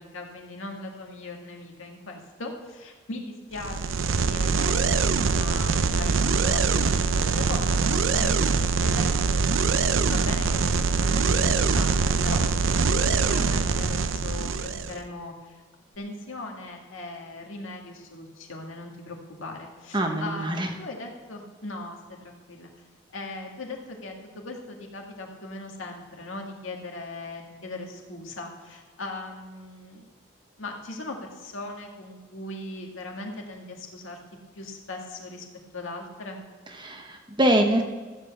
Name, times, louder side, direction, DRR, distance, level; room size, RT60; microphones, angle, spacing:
voice 1, 0.0-9.4 10.1-15.6 16.0-22.7 23.1-24.2 24.5-30.1 30.6-34.2 34.6-35.5 35.7-36.4, left 2 dB, 70° left, 1 dB, 2.0 m, -39 dB
sound 1, 3.6-15.0, right 4 dB, 70° right, 0.6 m, -23 dB
voice 2, 19.9-20.7 36.8-37.8, right 1 dB, 20° right, 4 dB, 1.0 m, -24 dB
13.5 x 7.6 x 7.1 m, 1.4 s
head